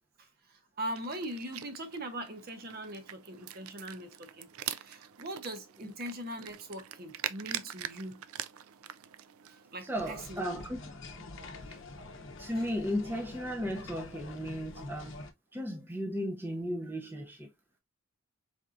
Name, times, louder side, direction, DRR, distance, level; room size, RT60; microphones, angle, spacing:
voice 1, 0.2-8.2 9.4-10.6, right 1 dB, 45° right, 0.9 m, -41 dB
sound 1, 0.9-10.1, right 11 dB, 80° right, 0.4 m, -43 dB
sound 2, 9.9-15.3, left 2 dB, 60° left, 0.7 m, -46 dB
voice 2, 9.9-10.8 11.7-11.8 12.4-15.1 15.5-17.5, equal, 10° right, 0.6 m, -35 dB
4.3 x 3.6 x 2.5 m
head